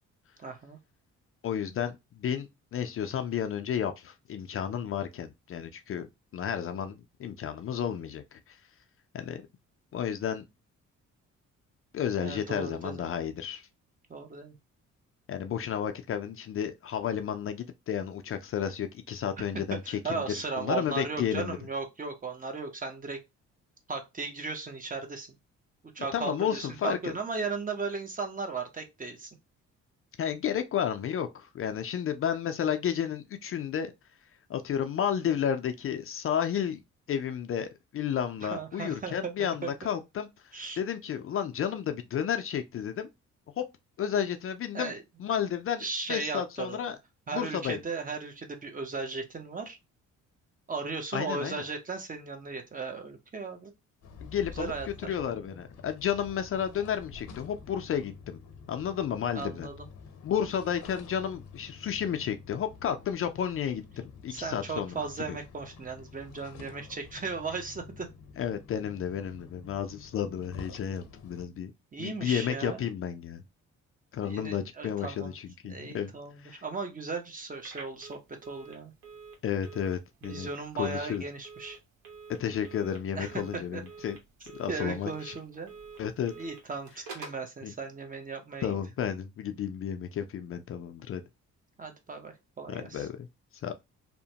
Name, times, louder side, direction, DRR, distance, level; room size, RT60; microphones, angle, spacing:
voice 1, 0.4-0.8 12.2-13.0 14.1-14.6 19.7-23.2 23.9-25.3 25.9-29.4 38.4-39.7 40.5-40.8 44.7-45.0 45.8-46.8 47.3-49.8 50.7-53.7 54.5-55.1 59.3-59.7 64.3-68.1 71.9-72.8 74.2-75.3 75.7-78.9 80.2-81.8 83.2-83.8 84.7-85.7 86.4-88.7 91.8-93.1, right 4 dB, 25° right, 0.7 m, -36 dB
voice 2, 1.4-6.1 6.3-8.6 9.1-9.4 9.9-10.4 11.9-13.7 15.3-21.6 26.1-27.1 30.2-33.9 34.5-36.8 37.1-40.3 40.8-43.1 43.6-43.7 44.0-44.9 45.2-47.0 47.3-47.8 51.1-51.6 54.2-58.4 58.7-59.7 60.2-65.4 68.4-71.7 72.0-73.4 74.1-76.1 76.4-76.6 79.4-80.5 80.8-81.2 82.4-84.2 84.5-85.3 86.0-86.3 87.6-87.7 88.6-91.2 92.7-93.3 93.6-93.7, left 8 dB, 45° left, 0.4 m, -32 dB
sound 1, 54.0-71.5, left 5 dB, 75° left, 0.7 m, -49 dB
Telephone, 77.6-87.5, right 4 dB, 85° right, 1.0 m, -48 dB
2.8 x 2.1 x 2.7 m
cardioid pair, 90°, 30 cm